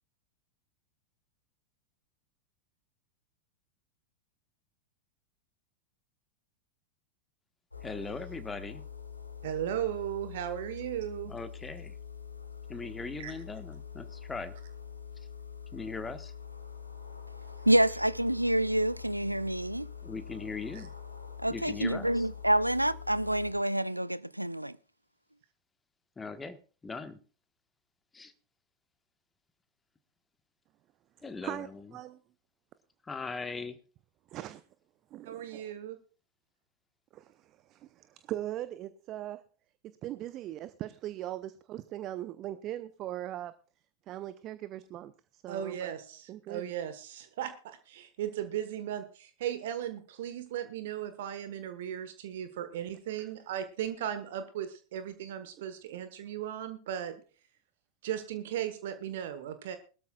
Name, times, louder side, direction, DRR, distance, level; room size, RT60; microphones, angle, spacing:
sound 1, 7.7-23.5, left 7 dB, 85° left, 2.2 m, -45 dB
voice 1, 7.8-8.8 11.3-12.0 12.7-14.5 15.7-16.3 20.0-20.9 21.5-22.3 26.2-26.6 26.8-27.2 28.1-28.3 31.2-31.9 33.0-33.8, left 4 dB, 15° left, 1.4 m, -40 dB
voice 2, 9.4-11.3 13.2-13.3 20.7-20.9 35.2-36.0 45.5-57.1 58.0-59.8, right 10 dB, 55° right, 1.4 m, -36 dB
voice 3, 17.7-19.9 21.4-24.7, right 1 dB, 85° right, 0.5 m, -27 dB
voice 4, 31.4-32.2 34.3-34.6 35.1-35.7 37.1-39.5 39.8-43.5 44.1-45.9 46.3-46.7 53.2-53.3, right 13 dB, 35° right, 0.7 m, -40 dB
21.0 x 13.0 x 2.4 m
figure-of-eight pair, 90°, 0 cm